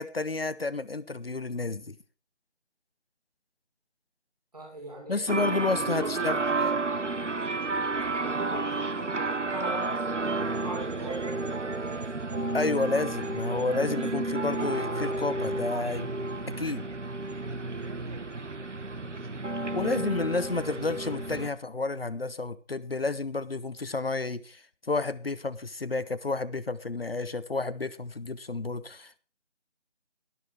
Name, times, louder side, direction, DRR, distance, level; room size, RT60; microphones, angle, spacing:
voice 1, 0.0-1.9 5.1-6.4 12.5-16.1 16.6-16.8 19.7-24.6 24.9-29.2, left 3 dB, 55° left, 0.7 m, -30 dB
voice 2, 4.5-6.3 6.6-6.7 8.0-12.1 18.9-19.2 19.6-20.2 20.5-20.6, right 2 dB, 35° right, 5.9 m, -41 dB
sound 1, 5.3-21.5, right 3 dB, 90° right, 1.4 m, -31 dB
12.0 x 11.0 x 4.7 m
figure-of-eight pair, 180°, 35 cm